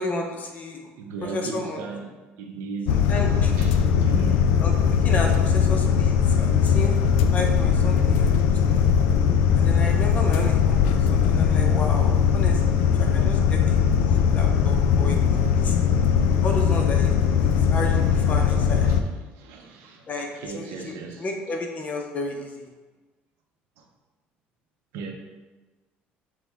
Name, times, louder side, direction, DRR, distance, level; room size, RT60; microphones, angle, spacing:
voice 1, 0.0-0.8 1.2-1.8 3.1-3.6 4.6-4.7 5.0-6.9 7.3-8.9 9.5-12.6 13.0-13.8 14.1-15.8 16.4-17.1 17.4-18.9 20.1-20.3 20.5-20.9 21.2-22.7, left 2 dB, 40° left, 2 dB, 0.7 m, -32 dB
voice 2, 1.0-3.0 3.6-4.6 18.8-19.0 19.3-21.3 23.8-23.9 24.9-25.1, right 5 dB, 85° right, 2 dB, 0.6 m, -36 dB
sound 1, 2.9-19.0, left 7 dB, 90° left, 0.3 m, -20 dB
6.1 x 2.2 x 3.5 m, 1.2 s
cardioid pair, 110°, 4 cm